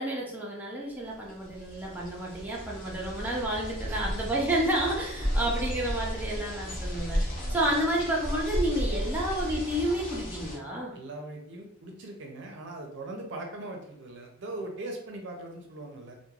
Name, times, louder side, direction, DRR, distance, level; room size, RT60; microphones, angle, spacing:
voice 1, 0.0-7.2 7.5-10.9, right 1 dB, 10° right, -3 dB, 0.4 m, -30 dB
sound 1, 1.1-10.6, equal, 40° left, 0.7 m, -34 dB
voice 2, 3.9-4.3 5.2-5.9 7.2-7.6 10.9-16.2, right 2 dB, 60° right, 2 dB, 0.5 m, -41 dB
3.1 x 2.1 x 2.3 m, 0.76 s
head